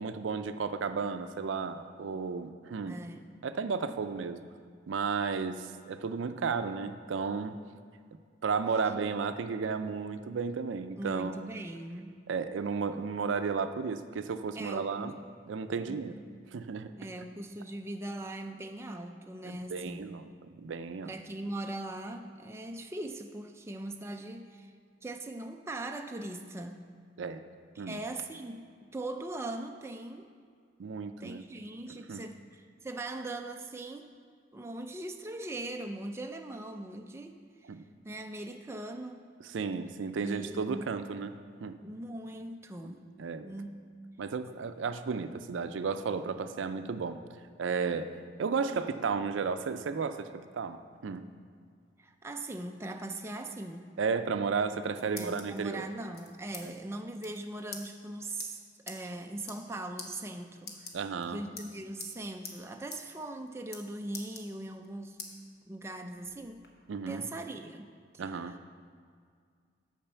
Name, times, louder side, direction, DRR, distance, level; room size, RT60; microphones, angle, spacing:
voice 1, 0.0-3.0 3.4-4.4 4.9-7.6 8.4-11.4 12.3-15.1 15.5-16.1 16.5-16.9 19.4-20.3 20.6-21.1 27.2-27.4 27.8-28.0 30.8-31.4 31.9-32.2 37.7-37.8 39.5-41.3 41.6-41.8 42.8-42.9 43.2-43.5 44.2-47.2 47.6-50.3 50.5-51.3 54.0-55.9 56.6-56.7 60.9-61.4 66.9-67.3 68.2-68.6, right 5 dB, 75° right, 10 dB, 0.4 m, -33 dB
voice 2, 2.9-3.3 11.0-12.2 14.6-15.1 15.9-16.2 17.0-20.1 21.0-24.7 25.0-26.9 27.8-30.3 31.2-34.1 34.5-37.4 38.0-39.3 40.2-40.9 41.8-43.1 43.4-43.8 52.0-53.9 55.1-58.6 58.9-60.9 61.3-65.2 65.7-66.6 67.1-68.6, right 2 dB, 15° right, 4 dB, 0.4 m, -40 dB
sound 1, 54.6-55.6 56.1-56.6 56.9-57.0 57.2-57.4 57.7-57.8 58.4-58.5 58.9-59.0 59.4-59.7 60.0-60.1 60.6-61.2 61.6-62.1 62.4-62.6 62.9-63.0 63.3-63.8 64.1-64.9 65.2-65.3 65.8-66.7, left 5 dB, 55° left, 1.0 m, -44 dB
8.7 x 5.2 x 6.9 m, 2.1 s
head